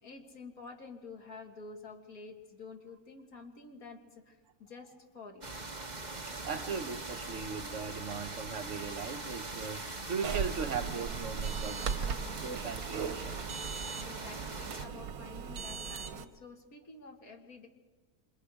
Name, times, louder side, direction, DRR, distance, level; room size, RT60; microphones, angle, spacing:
voice 1, 0.0-5.5 11.7-12.4 13.8-17.7, left 4 dB, 80° left, 2 dB, 2.8 m, -50 dB
sound 1, 5.4-14.9, right 2 dB, 30° right, 1.6 m, -42 dB
voice 2, 6.4-11.9 12.4-13.4 13.7-13.9, right 6 dB, 60° right, 8 dB, 1.3 m, -38 dB
sound 2, 10.2-16.3, right 6 dB, 90° right, 1.4 m, -38 dB
28.0 x 26.5 x 5.0 m, 1.3 s
omnidirectional pair, 1.5 m